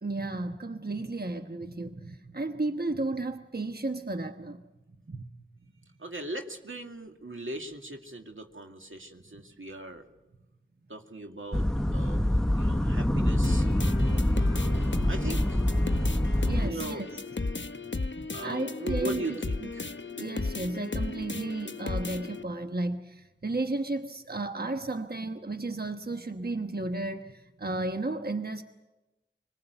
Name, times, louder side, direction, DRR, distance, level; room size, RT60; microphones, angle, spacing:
voice 1, 0.0-4.6 5.1-5.3 16.4-17.1 18.1-28.6, right 2 dB, 50° right, 1.2 m, -34 dB
voice 2, 6.0-10.1 10.9-12.2 12.5-13.7 15.1-15.6 16.6-17.1 17.8-18.1 18.3-19.9, right 2 dB, 85° right, 2.2 m, -39 dB
sound 1, 11.5-16.7, left 1 dB, 5° left, 1.1 m, -25 dB
sound 2, 13.4-22.4, left 3 dB, 65° left, 0.9 m, -34 dB
26.5 x 20.5 x 8.1 m
wide cardioid pair, 45°, 20 cm